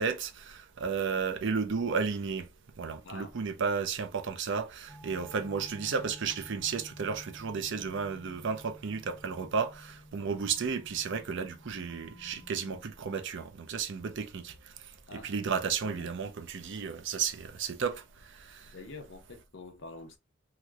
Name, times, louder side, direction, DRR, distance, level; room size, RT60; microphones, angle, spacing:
voice 1, 0.0-2.5 2.8-14.5 15.1-18.0 18.3-18.7, right 5 dB, 65° right, 0.5 m, -33 dB
sound 1, 4.9-12.8, equal, 10° left, 0.7 m, -52 dB
voice 2, 18.7-20.2, left 3 dB, 65° left, 0.8 m, -46 dB
3.0 x 2.9 x 2.3 m
head